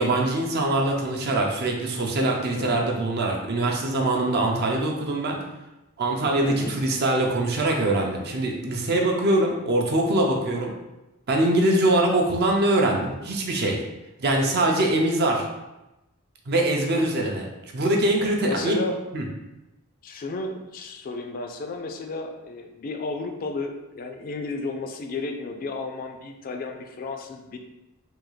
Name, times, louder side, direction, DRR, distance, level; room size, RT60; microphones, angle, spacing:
voice 1, 0.0-5.4 6.0-10.7 11.3-13.8 14.2-15.5 16.5-17.5 17.7-18.8 19.1-19.2, right 1 dB, 50° right, 1 dB, 0.5 m, -23 dB
voice 2, 2.5-2.8 6.4-6.7 18.4-19.0 20.0-27.6, left 3 dB, 40° left, 5 dB, 0.4 m, -33 dB
3.5 x 2.3 x 3.1 m, 0.99 s
head